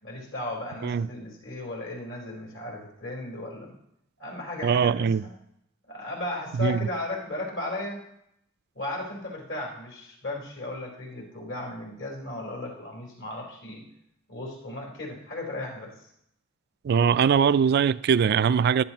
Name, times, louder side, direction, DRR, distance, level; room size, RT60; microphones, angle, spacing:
voice 1, 0.0-3.7 4.2-5.3 5.9-8.0 8.7-13.8 14.3-15.9, left 2 dB, 65° left, 4.1 m, -35 dB
voice 2, 4.6-5.2 6.6-6.8 16.8-18.8, right 7 dB, 50° right, 0.3 m, -21 dB
15.0 x 11.5 x 3.0 m
head